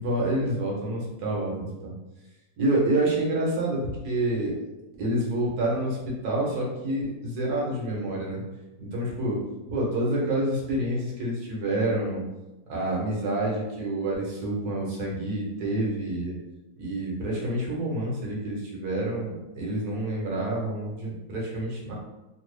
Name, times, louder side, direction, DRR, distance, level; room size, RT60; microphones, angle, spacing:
voice 1, 0.0-1.9 2.6-4.5 5.0-8.4 8.8-9.4 9.7-12.2 12.7-16.4 16.8-21.9, right 1 dB, 65° right, -3 dB, 1.3 m, -28 dB
3.3 x 2.3 x 3.2 m, 1.0 s
omnidirectional pair, 1.9 m